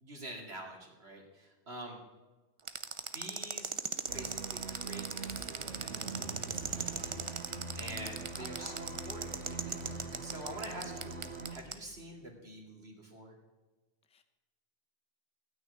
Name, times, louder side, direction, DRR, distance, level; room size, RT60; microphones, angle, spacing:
voice 1, 0.0-2.0 3.1-3.8 4.1-13.4, right 1 dB, 60° right, -1 dB, 2.8 m, -47 dB
sound 1, 2.7-11.7, right 5 dB, 35° right, 0.6 m, -38 dB
sound 2, 4.1-11.6, right 3 dB, 85° right, 1.8 m, -43 dB
voice 2, 8.4-8.9 14.1-14.2, left 4 dB, 5° left, 8 dB, 0.7 m, -51 dB
16.5 x 6.3 x 9.5 m, 1.2 s
omnidirectional pair, 1.2 m